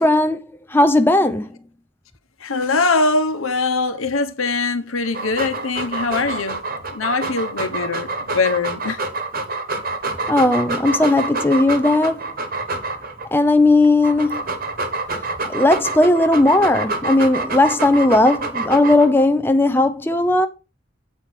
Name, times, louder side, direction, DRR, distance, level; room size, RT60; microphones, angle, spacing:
voice 1, 0.0-1.5 10.3-12.3 13.3-14.4 15.5-20.5, left 2 dB, 10° left, 0.5 m, -16 dB
voice 2, 2.4-6.6 6.9-9.0, left 3 dB, 85° left, 1.1 m, -22 dB
Dog, 5.0-13.3 13.8-19.2, right 3 dB, 45° right, 1.2 m, -27 dB
8.3 x 4.5 x 5.8 m
head